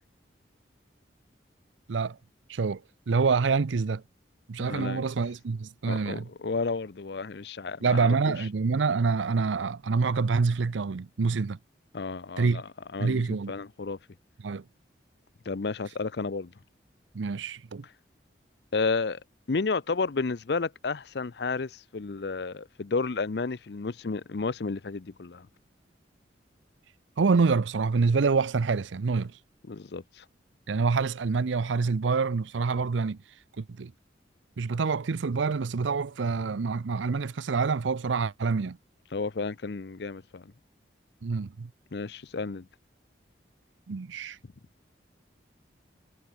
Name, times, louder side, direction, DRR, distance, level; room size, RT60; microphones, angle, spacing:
voice 1, 2.5-2.8 3.1-4.0 4.5-6.3 7.8-11.6 12.4-12.6 13.0-13.5 14.4-14.6 17.1-17.8 27.2-29.3 30.7-33.2 33.6-33.9 34.6-38.8 41.2-41.7 43.9-44.4, right 4 dB, 85° right, 0.6 m, -26 dB
voice 2, 4.6-5.0 5.9-8.3 11.9-12.6 12.9-14.0 15.5-16.5 18.7-19.2 19.5-25.5 29.7-30.2 39.1-40.5 41.9-42.7, left 4 dB, 65° left, 0.6 m, -32 dB
head